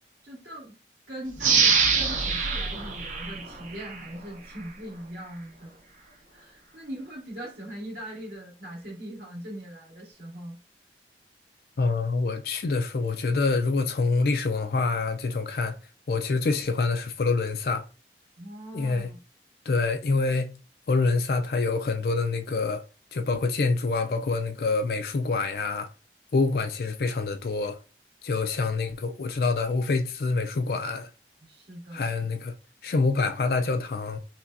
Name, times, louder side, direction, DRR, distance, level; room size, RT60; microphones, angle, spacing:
voice 1, 0.2-0.8 1.1-5.8 6.3-10.6 18.4-19.2 31.4-32.1, right 1 dB, 65° right, 2.1 m, -40 dB
sound 1, 1.4-4.1 4.5-4.6, right 5 dB, 45° right, 0.8 m, -24 dB
voice 2, 11.8-15.8 16.1-17.8 18.7-19.1 19.7-20.6 20.9-22.8 23.1-25.9 26.3-27.8 28.2-31.1 31.9-32.5 32.8-34.2, left 3 dB, 55° left, 0.4 m, -26 dB
5.7 x 2.2 x 2.6 m
head